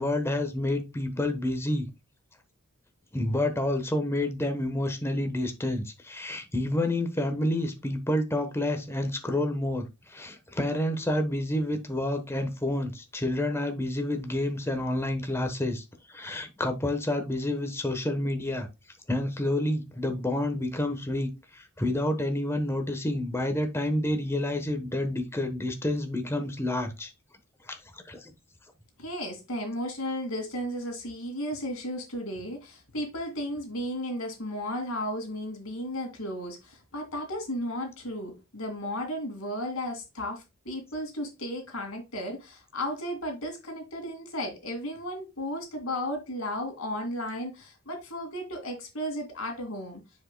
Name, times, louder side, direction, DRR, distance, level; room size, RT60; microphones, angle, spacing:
voice 1, 0.0-1.9 3.1-18.7 19.1-27.1 27.7-27.8 28.1-28.2, left 1 dB, 10° left, 1.1 m, -29 dB
voice 2, 29.0-50.0, equal, 70° left, 2.4 m, -34 dB
9.7 x 4.9 x 2.2 m
head